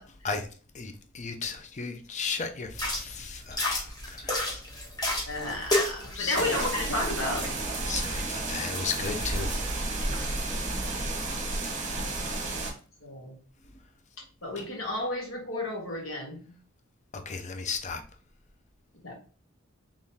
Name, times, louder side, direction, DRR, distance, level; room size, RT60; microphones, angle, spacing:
voice 1, 0.7-4.6 6.2-6.4 7.9-9.5 12.0-12.1 14.6-14.7 17.1-18.0, left 5 dB, 35° left, 0.5 m, -35 dB
sound 1, 2.7-9.7, left 1 dB, 20° left, 1.1 m, -33 dB
voice 2, 5.3-7.5 13.0-13.3 14.4-16.5 19.0-19.1, left 1 dB, 75° left, 1.6 m, -32 dB
sound 2, 6.3-12.7, right 2 dB, 35° right, 0.9 m, -32 dB
3.7 x 3.5 x 2.7 m
head